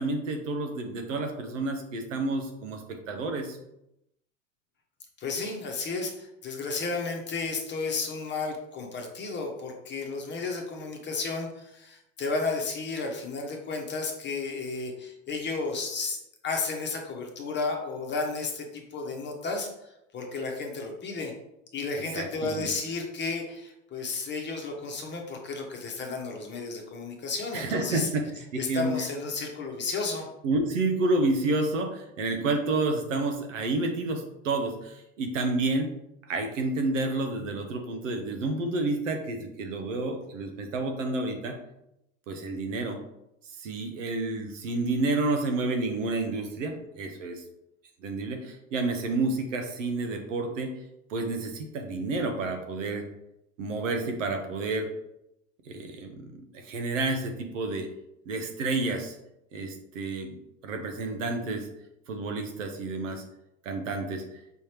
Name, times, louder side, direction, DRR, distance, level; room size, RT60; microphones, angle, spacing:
voice 1, 0.0-3.6 21.9-22.7 27.5-28.9 30.4-35.9 36.3-41.6 42.3-43.0 43.6-47.4 48.0-50.7 51.1-53.0 53.6-54.9 55.7-57.9 58.3-59.1 59.5-60.4 60.6-61.7 62.1-63.2 63.6-64.2, right 2 dB, 75° right, 5 dB, 0.9 m, -30 dB
voice 2, 5.2-21.3 21.7-28.1 28.5-30.3, left 3 dB, 30° left, 2 dB, 1.0 m, -33 dB
5.5 x 3.1 x 2.9 m, 0.83 s
hypercardioid pair, 85°, 38 cm